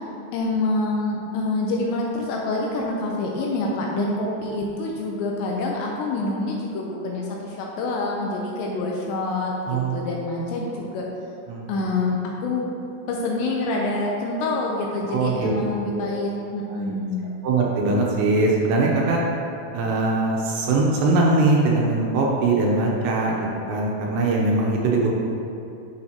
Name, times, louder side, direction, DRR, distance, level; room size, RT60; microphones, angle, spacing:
voice 1, 0.3-11.0 11.7-12.7 13.1-17.3, left 2 dB, 80° left, -2 dB, 2.7 m, -26 dB
voice 2, 9.7-10.0 10.7-10.8 11.5-11.9 15.1-15.5 15.9-16.2 16.7-17.0 17.4-19.2 19.7-25.1, right 2 dB, 75° right, -2 dB, 2.8 m, -22 dB
11.0 x 6.5 x 2.9 m, 2.8 s
omnidirectional pair, 5.5 m